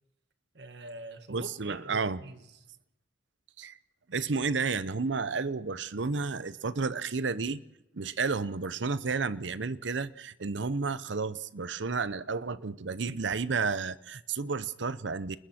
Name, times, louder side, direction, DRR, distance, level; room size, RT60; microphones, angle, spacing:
voice 1, 0.5-2.6, right 1 dB, 65° right, 1.6 m, -45 dB
voice 2, 1.3-2.2 3.6-3.8 4.1-7.6 7.9-15.4, right 4 dB, 85° right, 0.8 m, -31 dB
29.5 x 21.0 x 4.4 m
head